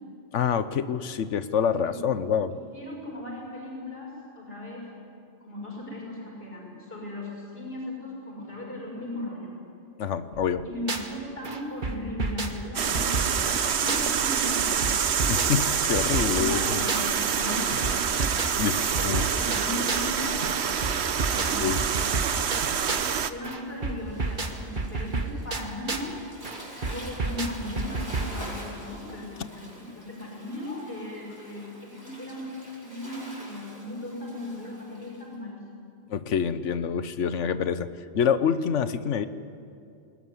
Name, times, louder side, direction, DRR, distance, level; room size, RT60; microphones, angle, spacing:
voice 1, 0.3-2.6 10.0-10.6 15.3-16.6 18.6-19.2 21.6-21.8 36.1-37.9 38.1-39.3, left 7 dB, 85° left, 13 dB, 1.2 m, -26 dB
voice 2, 2.5-4.9 5.4-9.5 10.6-15.1 16.3-18.2 19.0-22.3 22.5-22.7 23.3-26.2 26.8-32.5 32.8-35.6, left 1 dB, 55° left, -3 dB, 6.7 m, -37 dB
sound 1, 10.3-11.2 11.4-14.2 14.4-17.2 17.4-20.2 20.4-23.2 23.4-26.2 26.4-28.4, right 3 dB, 45° right, 1.6 m, -32 dB
sound 2, 12.7-23.3, right 7 dB, 65° right, 1.1 m, -26 dB
Waves surf, 15.8-35.3, equal, 20° right, 4.9 m, -47 dB
20.5 x 20.0 x 9.7 m, 2.5 s
omnidirectional pair, 1.2 m